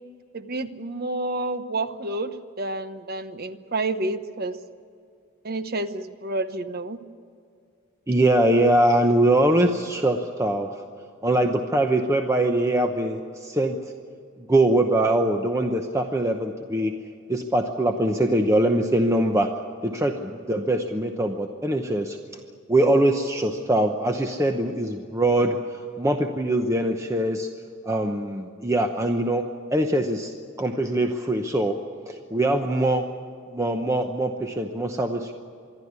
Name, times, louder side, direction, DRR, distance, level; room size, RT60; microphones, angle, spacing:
voice 1, 0.3-4.6 5.4-7.0 28.0-28.2, right 2 dB, 45° right, 11 dB, 1.0 m, -29 dB
voice 2, 8.1-10.7 11.2-13.7 14.5-16.9 17.3-19.5 19.8-22.2 22.7-27.5 27.9-29.4 29.7-31.8 32.1-33.1 33.5-35.3, right 1 dB, 15° right, 4 dB, 0.9 m, -22 dB
26.0 x 12.0 x 9.6 m, 2.4 s
head